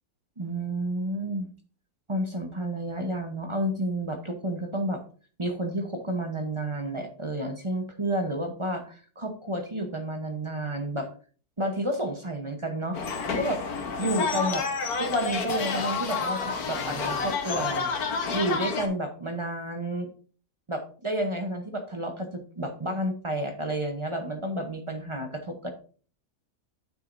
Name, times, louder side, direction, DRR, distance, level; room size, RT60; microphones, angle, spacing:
voice 1, 0.4-1.5 2.1-5.0 5.4-11.1 11.6-13.0 13.4-13.6 14.0-14.7 15.0-17.9 18.3-20.1 20.7-25.7, right 1 dB, 25° right, 5 dB, 0.8 m, -30 dB
sound 1, 12.9-18.9, left 4 dB, 70° left, 1.6 m, -29 dB
9.2 x 7.5 x 2.6 m, 0.41 s
omnidirectional pair, 1.7 m